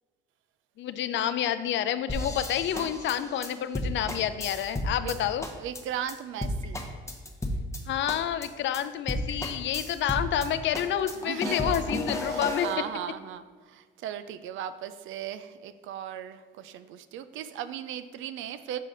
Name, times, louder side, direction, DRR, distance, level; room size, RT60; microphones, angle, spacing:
voice 1, 0.8-5.5 7.9-12.7, left 10 dB, 70° left, 12 dB, 0.4 m, -29 dB
sound 1, 2.1-5.2 5.4-5.8 6.1-6.2 6.4-7.8 8.1-8.5 8.7-8.8 9.1-10.5 10.7-12.8, left 1 dB, 15° left, 0.8 m, -33 dB
voice 2, 2.7-3.1 5.0-5.2 5.5-6.8 11.2-18.8, right 10 dB, 80° right, 12 dB, 0.4 m, -37 dB
5.6 x 4.8 x 3.9 m, 1.4 s
cardioid pair, 90°, 20 cm